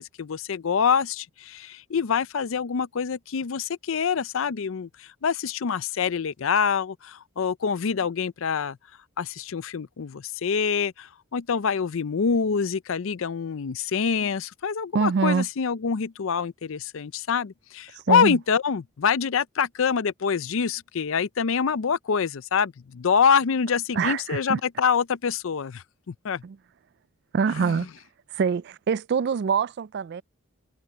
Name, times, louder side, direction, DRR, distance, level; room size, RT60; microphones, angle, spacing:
voice 1, 0.0-8.8 9.2-26.4 27.6-27.8, left 6 dB, 65° left, 0.5 m, -26 dB
voice 2, 14.9-15.5 18.1-18.4 23.9-24.6 26.4-26.6 27.3-27.9 28.3-30.2, right 6 dB, 50° right, 0.3 m, -24 dB
head